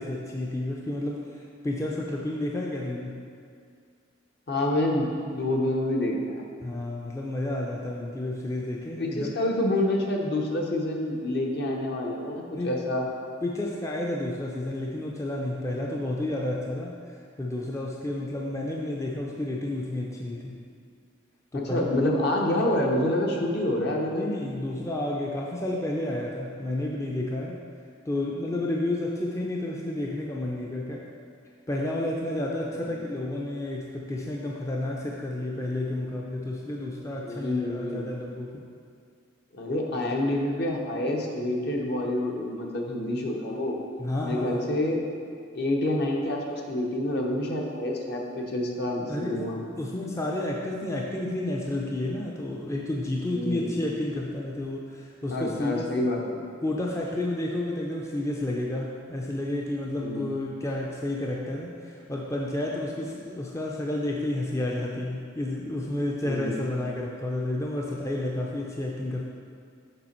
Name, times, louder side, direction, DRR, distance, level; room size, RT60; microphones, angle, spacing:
voice 1, 0.0-3.2 6.6-9.3 12.5-12.7 13.4-20.6 21.5-21.9 24.1-27.6 28.1-31.1 31.7-38.6 44.0-44.6 49.1-49.4 49.8-55.9 56.6-69.3, left 1 dB, 15° left, -2 dB, 0.4 m, -31 dB
voice 2, 4.5-5.1 5.3-6.4 9.0-13.1 21.5-24.2 32.8-32.9 37.2-38.0 39.5-43.7 44.2-45.0 45.5-49.6 53.3-53.6 55.3-56.4 60.0-60.3 66.2-66.5, left 1 dB, 55° left, 0 dB, 0.9 m, -27 dB
6.8 x 5.1 x 4.3 m, 2.2 s
head